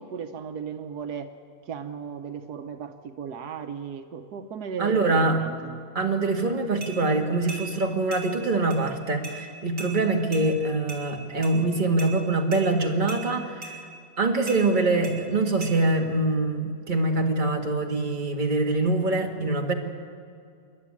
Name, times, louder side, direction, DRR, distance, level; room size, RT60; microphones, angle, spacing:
voice 1, 0.0-1.3 1.7-5.8, right 7 dB, 80° right, 7 dB, 1.5 m, -36 dB
voice 2, 4.8-5.4 6.0-13.8 14.2-19.7, right 2 dB, 30° right, 2 dB, 1.9 m, -24 dB
sound 1, 6.8-6.9 7.5-7.7 8.1-8.3 8.7-8.8 9.2-9.4 9.8-9.9 10.3-10.5 10.9-11.0 11.4-11.6 12.0-12.1 12.5-12.6 13.1-13.2 13.6-13.8 14.5-14.6 15.0-15.2 15.6-15.7, right 2 dB, 60° right, 3.9 m, -38 dB
27.5 x 11.5 x 9.7 m, 2.4 s
omnidirectional pair, 1.7 m